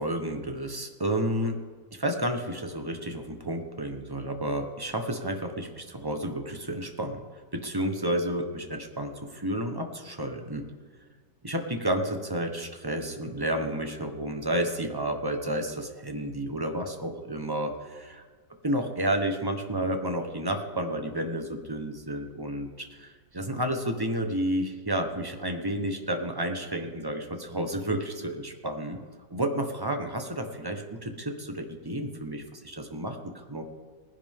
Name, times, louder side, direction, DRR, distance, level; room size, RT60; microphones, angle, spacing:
voice 1, 0.0-1.6 1.9-7.2 7.5-10.6 11.4-18.2 18.6-29.0 29.3-33.6, right 1 dB, 20° right, 4 dB, 0.8 m, -31 dB
20.0 x 10.0 x 3.6 m, 1.5 s
omnidirectional pair, 2.0 m